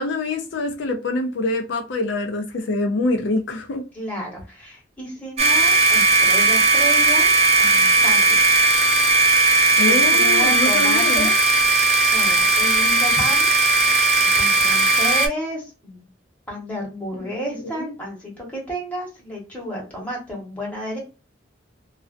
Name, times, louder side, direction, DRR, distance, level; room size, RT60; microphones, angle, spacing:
voice 1, 0.0-3.8 9.8-11.3 17.3-17.4 17.7-17.9, left 2 dB, 75° left, 0.5 m, -25 dB
voice 2, 3.9-7.3 7.6-8.6 9.8-11.3 12.1-13.5 14.2-16.1 16.5-21.0, equal, 10° left, 1.1 m, -31 dB
sound 1, 5.4-15.3, right 2 dB, 35° right, 0.4 m, -17 dB
2.4 x 2.1 x 2.4 m
head